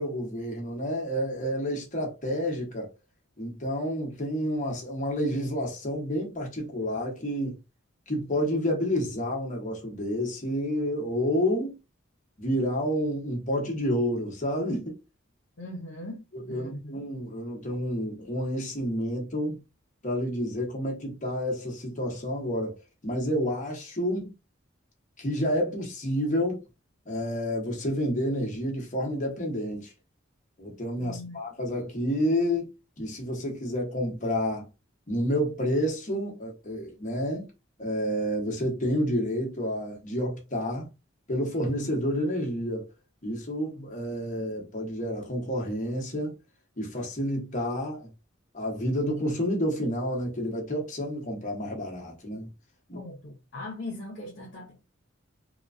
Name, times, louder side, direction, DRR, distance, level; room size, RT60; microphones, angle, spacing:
voice 1, 0.0-2.9 3.4-7.6 8.1-11.8 12.4-15.0 16.3-19.6 20.0-24.3 25.2-26.6 27.1-29.9 30.6-32.7 33.0-34.7 35.1-37.5 37.8-40.9 41.3-42.9 43.2-46.4 46.8-48.1 48.5-52.5 52.9-53.0, equal, 35° left, 1.0 m, -29 dB
voice 2, 15.6-16.2 16.5-17.0 31.0-31.4 52.9-54.8, left 2 dB, 55° left, 0.6 m, -40 dB
2.9 x 2.2 x 2.5 m
head